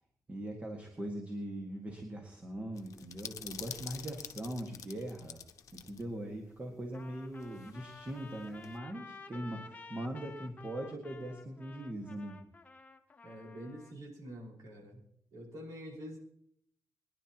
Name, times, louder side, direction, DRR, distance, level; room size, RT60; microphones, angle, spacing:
voice 1, 0.3-5.4 5.7-12.4, right 1 dB, 25° right, 2 dB, 1.9 m, -41 dB
sound 1, 2.8-6.0 6.3-6.4 7.4-8.8, left 8 dB, 70° left, 0.8 m, -47 dB
Trumpet, 6.9-14.0, left 4 dB, 25° left, 1.0 m, -52 dB
voice 2, 13.2-15.0 15.3-16.2, equal, 80° right, -2 dB, 5.2 m, -46 dB
24.0 x 10.5 x 3.0 m, 0.69 s
cardioid pair, 125°, 6 cm